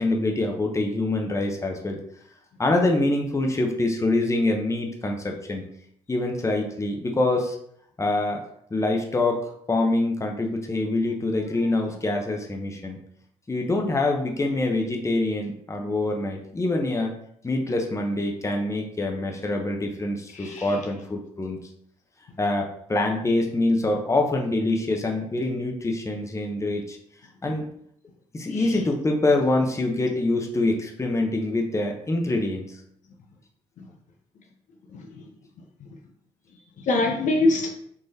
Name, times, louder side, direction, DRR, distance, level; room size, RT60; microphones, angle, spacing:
voice 1, 0.0-2.0 2.6-5.7 6.1-7.6 8.0-8.4 8.7-13.0 13.5-17.1 17.4-21.6 22.4-27.0 27.4-27.7 28.3-32.7, left 2 dB, 20° left, 2 dB, 0.8 m, -25 dB
voice 2, 20.3-20.8 28.5-28.8 33.8-33.9 34.9-35.3 35.8-35.9 36.8-37.7, left 2 dB, 65° left, 2 dB, 0.6 m, -25 dB
3.7 x 3.1 x 2.7 m, 0.69 s
supercardioid pair, 60°, 14 cm